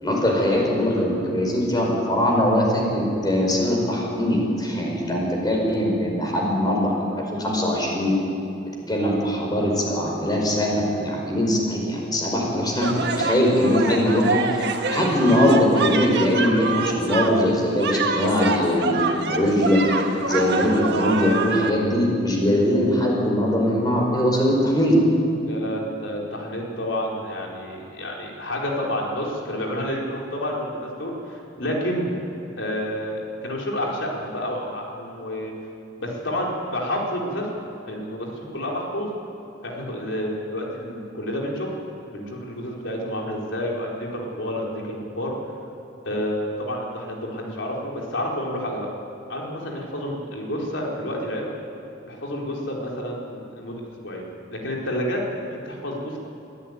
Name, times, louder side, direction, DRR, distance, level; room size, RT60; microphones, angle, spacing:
voice 1, 0.0-8.2 8.7-19.0 19.3-20.0 20.3-25.0, left 1 dB, 20° left, -1 dB, 5.0 m, -21 dB
sound 1, 12.8-21.7, right 4 dB, 60° right, 1.6 m, -26 dB
voice 2, 25.4-32.2 32.6-35.5 36.0-37.5 37.9-39.1 39.6-41.7 42.1-45.3 46.0-48.9 49.3-51.5 52.0-54.2 54.5-56.2, equal, 75° left, -2 dB, 4.4 m, -29 dB
22.0 x 14.0 x 9.4 m, 2.7 s
head